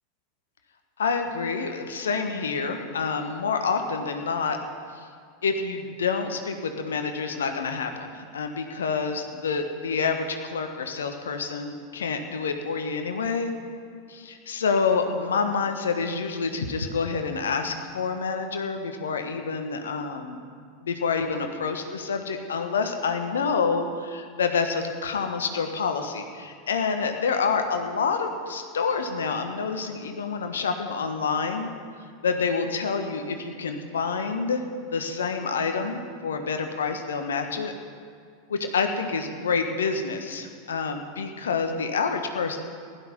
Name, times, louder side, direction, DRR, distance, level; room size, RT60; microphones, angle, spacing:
voice 1, 1.0-4.6 5.4-13.5 14.1-20.4 20.8-31.7 32.2-34.6 34.9-37.7 38.5-42.6, left 5 dB, 70° left, 6 dB, 1.3 m, -28 dB
15.5 x 11.5 x 5.4 m, 2.2 s
figure-of-eight pair, 85°, 0 cm